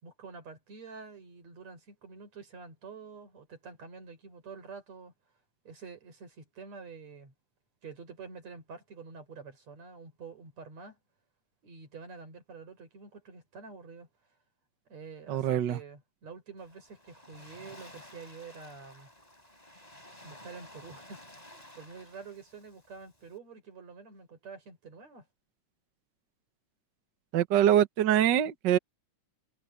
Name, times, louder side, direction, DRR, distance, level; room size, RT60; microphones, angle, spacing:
voice 1, 0.0-5.1 5.6-7.3 7.8-11.0 11.6-14.1 14.9-19.1 20.2-21.2 21.5-25.3, right 5 dB, 55° right, 6.4 m, -47 dB
voice 2, 15.3-15.8 27.3-28.8, right 10 dB, 85° right, 0.9 m, -24 dB
Waves surf, 16.6-23.4, left 1 dB, 10° left, 7.0 m, -53 dB
omnidirectional pair, 3.8 m